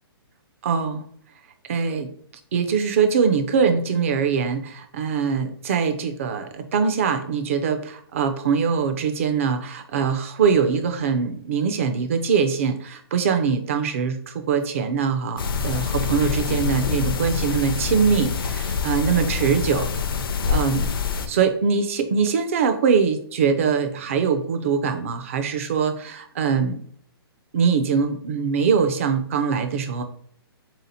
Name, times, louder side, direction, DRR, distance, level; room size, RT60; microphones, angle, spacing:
voice 1, 0.6-1.0 1.7-2.1 2.5-19.9 20.5-20.9 21.3-26.8 27.5-30.0, right 6 dB, 35° right, 7 dB, 0.4 m, -22 dB
sound 1, 15.4-21.3, left 6 dB, 60° left, 0.5 m, -25 dB
3.5 x 2.8 x 4.0 m, 0.62 s
hypercardioid pair, 170°, 13 cm